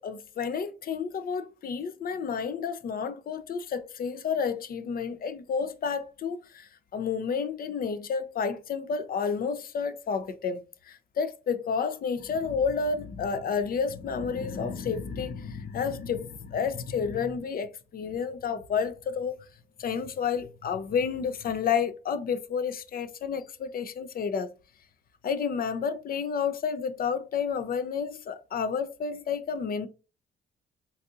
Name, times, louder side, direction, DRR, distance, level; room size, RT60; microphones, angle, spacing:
voice 1, 0.0-19.4 19.8-24.5 25.2-29.9, left 6 dB, 50° left, 0.5 m, -30 dB
4.0 x 2.7 x 2.3 m
cardioid pair, 90°, 20 cm